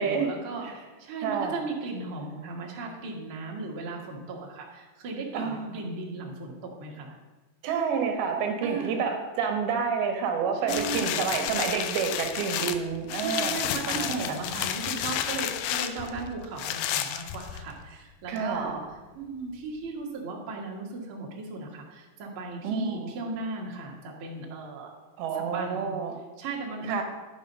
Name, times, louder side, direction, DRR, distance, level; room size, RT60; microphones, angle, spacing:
voice 1, 0.0-7.1 8.6-9.0 10.5-11.2 13.2-18.8 19.1-24.9 25.3-25.9 26.4-27.0, right 3 dB, 50° right, -2 dB, 1.6 m, -36 dB
voice 2, 1.2-1.6 5.3-5.8 7.6-14.1 18.3-18.7 22.6-23.1 25.2-26.2 26.9-27.0, right 6 dB, 80° right, 4 dB, 2.8 m, -29 dB
sound 1, 10.7-17.8 18.4-18.5, left 10 dB, 85° left, 1.9 m, -31 dB
10.5 x 5.3 x 5.4 m, 1.2 s
omnidirectional pair, 4.5 m